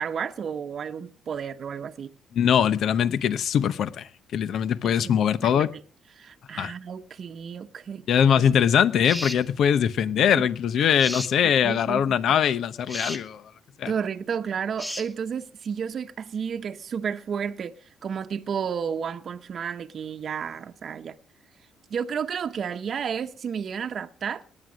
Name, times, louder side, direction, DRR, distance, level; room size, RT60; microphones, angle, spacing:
voice 1, 0.0-2.1 4.8-5.7 6.2-8.1 8.4-8.5 10.3-10.4 10.8-11.0 11.6-12.4 13.9-17.7 18.0-21.1 21.9-24.4, right 7 dB, 55° right, 0.9 m, -32 dB
voice 2, 2.3-5.7 6.6-6.7 8.1-13.4 13.8-13.9, left 8 dB, 70° left, 0.9 m, -22 dB
sound 1, 9.0-9.4 11.0-11.3 12.9-13.2 14.8-15.1, equal, 10° left, 1.6 m, -33 dB
19.0 x 9.6 x 6.2 m
cardioid pair, 90°, 0 cm